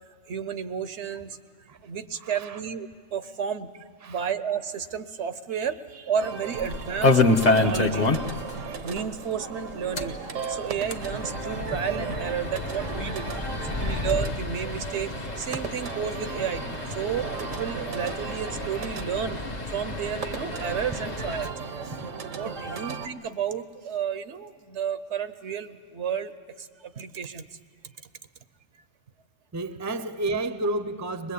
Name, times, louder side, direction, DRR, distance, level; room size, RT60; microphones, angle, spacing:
voice 1, 0.3-1.4 1.8-3.7 4.1-8.2 8.6-10.1 10.5-13.3 13.8-19.4 19.7-21.5 21.8-21.9 22.3-26.3 26.6-27.5, right 7 dB, 65° right, 1.0 m, -32 dB
voice 2, 2.2-2.6 4.0-4.3 29.5-31.3, right 2 dB, 15° right, 0.7 m, -31 dB
sound 1, 6.1-23.1, right 5 dB, 85° right, 1.4 m, -37 dB
sound 2, 6.6-8.5 8.8-8.9 9.2-9.3 9.8-21.5, left 2 dB, 35° left, 1.1 m, -28 dB
22.0 x 21.0 x 8.4 m
omnidirectional pair, 1.3 m